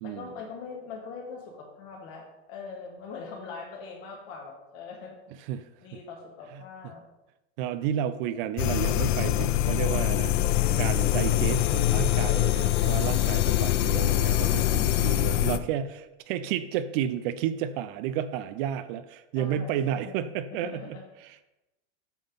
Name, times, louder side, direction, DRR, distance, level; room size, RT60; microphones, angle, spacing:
voice 1, 0.0-5.2 5.8-7.0 19.3-21.0, left 5 dB, 55° left, 1 dB, 2.2 m, -42 dB
voice 2, 7.6-10.5 10.7-21.0, right 10 dB, 45° right, 12 dB, 0.5 m, -31 dB
sound 1, 8.6-15.6, left 13 dB, 75° left, 0.6 m, -24 dB
9.0 x 3.8 x 5.4 m, 0.98 s
supercardioid pair, 135°, 37 cm